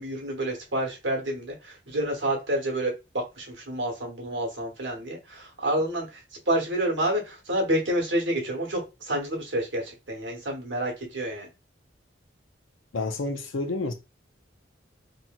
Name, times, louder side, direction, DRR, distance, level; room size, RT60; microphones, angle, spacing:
voice 1, 0.0-6.2 6.5-11.5, right 1 dB, 75° right, 1.0 m, -29 dB
voice 2, 12.9-13.9, left 2 dB, 90° left, 0.6 m, -29 dB
3.0 x 2.7 x 2.3 m
head